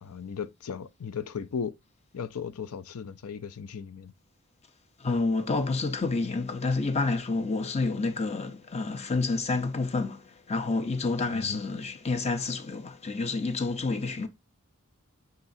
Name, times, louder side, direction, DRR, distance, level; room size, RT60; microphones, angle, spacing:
voice 1, 0.0-1.7 2.1-4.1 11.3-11.6, left 6 dB, 75° left, 0.5 m, -36 dB
voice 2, 5.0-10.2 10.5-14.3, left 3 dB, 30° left, 0.7 m, -29 dB
9.6 x 4.0 x 2.7 m
head